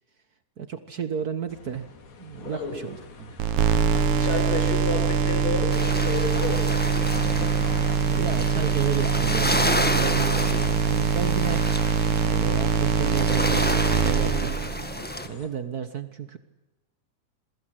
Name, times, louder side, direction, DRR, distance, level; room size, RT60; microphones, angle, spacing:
voice 1, 0.6-1.9 2.2-3.4 8.0-11.8 12.1-14.6 15.2-16.4, right 7 dB, 65° right, 11 dB, 0.9 m, -33 dB
sound 1, 1.5-15.5, left 5 dB, 80° left, 4.0 m, -43 dB
voice 2, 2.5-2.8 4.1-7.0 10.4-10.7, left 3 dB, 65° left, 4 dB, 7.0 m, -31 dB
sound 2, 3.4-15.1, right 6 dB, 85° right, 2.7 m, -23 dB
sound 3, 5.7-15.3, left 1 dB, 10° left, 0.4 m, -30 dB
27.5 x 23.0 x 7.6 m, 1.0 s
omnidirectional pair, 3.4 m